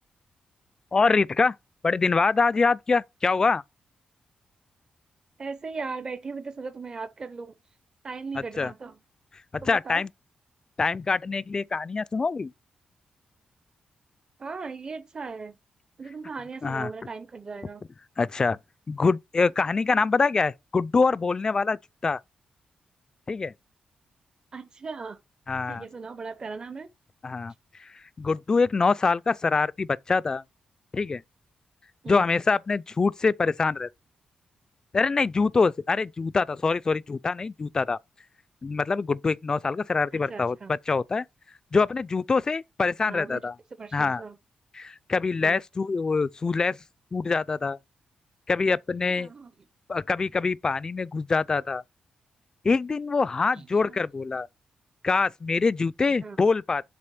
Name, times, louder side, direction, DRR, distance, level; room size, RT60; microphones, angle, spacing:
voice 1, 0.9-1.5 1.8-3.6 8.3-8.7 9.5-10.1 10.8-12.5 16.6-16.9 18.2-18.6 18.9-22.2 23.3-23.5 25.5-25.9 27.2-27.5 27.8-30.4 30.9-31.2 32.1-33.9 34.9-38.0 38.6-41.2 41.7-43.6 43.9-44.2 44.7-46.8 47.1-47.8 48.5-49.3 49.9-51.8 52.6-54.5 55.0-56.8, left 4 dB, 30° left, 0.4 m, -25 dB
voice 2, 5.4-7.5 8.0-8.9 9.6-10.0 14.4-15.5 16.0-17.8 24.5-25.2 25.7-26.9 32.0-32.2 40.1-40.7 43.0-43.4 43.8-44.3 45.4-45.6 49.2-49.5 56.2-56.4, right 4 dB, 35° right, 0.6 m, -37 dB
7.7 x 3.4 x 6.0 m
cardioid pair, 115°, 2 cm